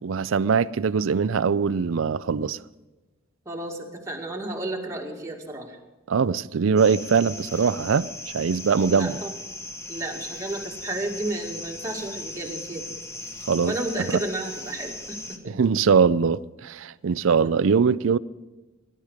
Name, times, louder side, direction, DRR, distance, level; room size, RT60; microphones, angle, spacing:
voice 1, 0.0-2.6 6.1-9.2 13.5-13.7 15.4-18.2, right 6 dB, 80° right, 0.5 m, -22 dB
voice 2, 3.5-5.8 8.9-9.3 9.9-12.9 13.6-15.4, right 2 dB, 15° right, 2.2 m, -32 dB
sound 1, 6.8-15.4, left 2 dB, 15° left, 1.2 m, -38 dB
20.5 x 11.0 x 5.0 m
head